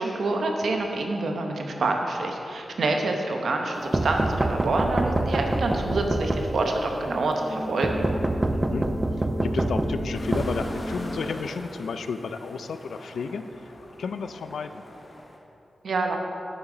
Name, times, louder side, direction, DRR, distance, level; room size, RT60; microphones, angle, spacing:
voice 1, 0.0-8.0 15.8-16.2, right 2 dB, 75° right, 3 dB, 0.9 m, -27 dB
sound 1, 3.3-11.3, equal, ahead, 0.9 m, -36 dB
sound 2, 3.9-6.9 7.8-11.2, right 2 dB, 25° right, 0.4 m, -27 dB
voice 2, 8.5-8.9 9.4-13.7 14.0-14.8, left 5 dB, 90° left, 10 dB, 0.4 m, -32 dB
sound 3, 10.1-15.4, left 1 dB, 40° left, 1.1 m, -42 dB
9.9 x 7.2 x 3.9 m, 2.9 s
wide cardioid pair, 100°, 0 cm